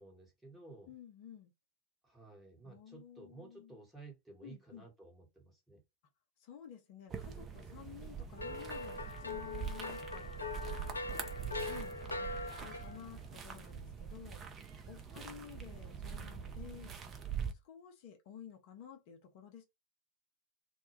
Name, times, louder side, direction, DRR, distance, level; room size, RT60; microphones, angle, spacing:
voice 1, 0.0-0.9 2.0-5.8 11.4-11.8 15.0-15.4, right 3 dB, 10° right, 1.2 m, -55 dB
voice 2, 0.9-1.5 2.6-3.8 4.4-4.9 6.4-10.7 11.7-14.4 14.9-17.0 17.6-19.6, left 9 dB, 45° left, 0.7 m, -53 dB
sound 1, 7.1-17.5, right 7 dB, 25° right, 0.5 m, -44 dB
sound 2, 8.4-13.1, left 3 dB, 80° left, 0.3 m, -42 dB
2.2 x 2.1 x 3.2 m
figure-of-eight pair, 90°, 0 cm